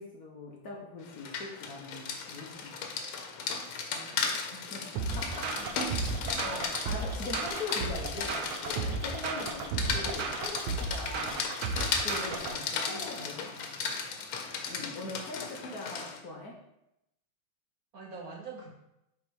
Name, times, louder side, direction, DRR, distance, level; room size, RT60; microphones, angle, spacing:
voice 1, 0.0-2.9 4.3-5.6 6.4-11.5 12.0-13.9 14.7-16.6, left 2 dB, 55° left, -1 dB, 1.2 m, -42 dB
Rain, 1.1-16.2, left 5 dB, 90° left, 1.7 m, -36 dB
voice 2, 3.9-4.4 5.3-5.6 12.3-13.3 17.9-18.7, right 4 dB, 55° right, 0 dB, 1.3 m, -46 dB
sound 1, 5.0-12.6, right 4 dB, 90° right, 1.6 m, -34 dB
8.4 x 3.3 x 4.6 m, 0.85 s
omnidirectional pair, 2.2 m